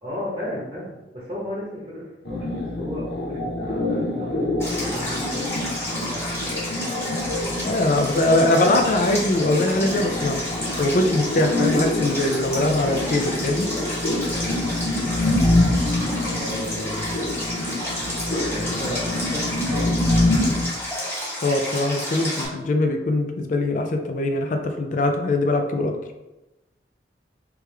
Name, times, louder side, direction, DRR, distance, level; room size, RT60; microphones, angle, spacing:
voice 1, 0.0-2.5 2.8-5.5 5.8-6.7 16.3-17.2 18.5-19.4 19.7-20.2, equal, 30° right, -6 dB, 0.9 m, -34 dB
sound 1, 2.3-20.7, left 1 dB, 70° left, 0.8 m, -26 dB
Stream, 4.6-22.4, left 1 dB, 15° left, 1.3 m, -31 dB
voice 2, 7.6-10.4 10.8-13.7 21.4-25.9, left 2 dB, 45° left, 5 dB, 0.4 m, -22 dB
3.3 x 3.2 x 3.3 m, 1.0 s
head